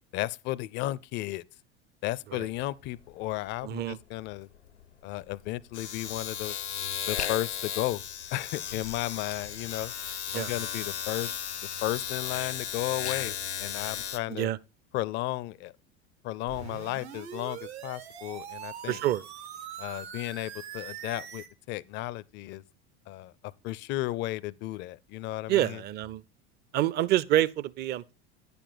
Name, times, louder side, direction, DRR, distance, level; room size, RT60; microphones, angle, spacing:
voice 1, 0.1-1.4 2.0-4.5 5.0-6.6 7.1-8.0 8.3-9.9 10.3-11.3 11.8-14.5 14.9-15.7 16.2-19.0 19.8-22.6 23.1-23.3 23.6-25.8, left 16 dB, 35° left, 0.4 m, -34 dB
Domestic sounds home sounds, 2.4-2.6 2.9-14.2, left 9 dB, 85° left, 0.7 m, -35 dB
voice 2, 3.6-4.0 10.3-10.5 14.3-14.6 18.9-19.2 25.5-26.2 26.7-28.1, right 13 dB, 30° right, 0.5 m, -27 dB
sound 1, 16.5-21.5, right 9 dB, 70° right, 1.2 m, -42 dB
10.0 x 6.9 x 3.9 m
figure-of-eight pair, 75°, 33 cm